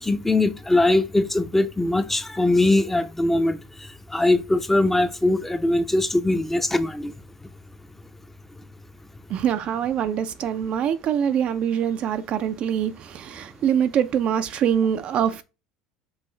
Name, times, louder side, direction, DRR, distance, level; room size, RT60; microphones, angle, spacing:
voice 1, 0.0-3.6 4.1-7.1, left 2 dB, 10° left, 0.6 m, -21 dB
voice 2, 9.3-15.4, right 9 dB, 50° right, 0.4 m, -24 dB
5.5 x 2.4 x 3.1 m
hypercardioid pair, 80°, 3 cm